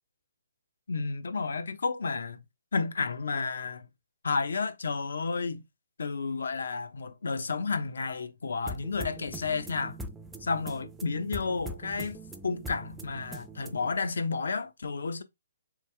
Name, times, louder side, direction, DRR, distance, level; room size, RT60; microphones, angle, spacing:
voice 1, 0.9-2.4 2.7-3.9 4.2-5.6 6.0-10.0 10.4-15.2, left 4 dB, 75° left, 0.6 m, -31 dB
sound 1, 8.7-14.0, right 1 dB, 5° right, 0.4 m, -42 dB
3.4 x 3.2 x 3.2 m
hypercardioid pair, 155°, 0 cm